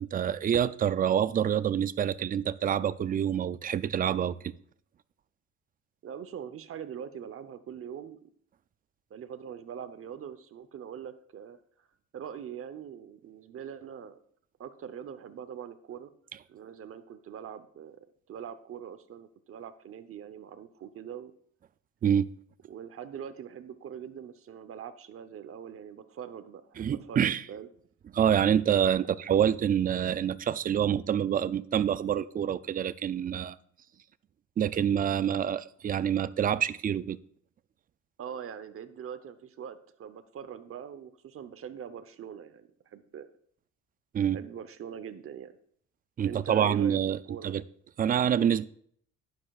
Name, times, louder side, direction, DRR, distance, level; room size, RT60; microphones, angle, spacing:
voice 1, 0.0-4.5 22.0-22.3 26.8-27.4 28.1-33.6 34.6-37.2 44.1-44.4 46.2-47.2 47.4-47.6 48.0-48.7, right 9 dB, 30° right, 0.4 m, -26 dB
voice 2, 6.0-8.3 9.1-11.6 12.1-14.2 14.6-16.1 16.5-21.3 22.7-27.7 38.2-43.3 44.3-45.6 46.2-47.0 47.3-47.6, right 8 dB, 45° right, 0.9 m, -42 dB
12.0 x 9.9 x 2.4 m
cardioid pair, 110°, 32 cm